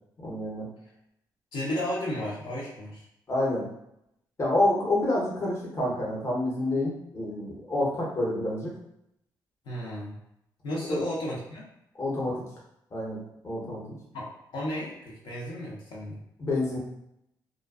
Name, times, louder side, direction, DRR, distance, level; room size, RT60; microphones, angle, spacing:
voice 1, 0.2-0.6 3.3-3.7 4.4-8.7 10.9-11.0 12.0-12.4 12.9-13.2 13.4-13.8 16.4-16.8, left 1 dB, 35° left, -4 dB, 0.8 m, -28 dB
voice 2, 1.5-3.0 9.6-10.1 10.6-11.6 14.1-16.2, left 1 dB, 75° left, -5 dB, 0.8 m, -33 dB
2.4 x 2.2 x 2.3 m, 0.78 s
cardioid pair, 100°, 8 cm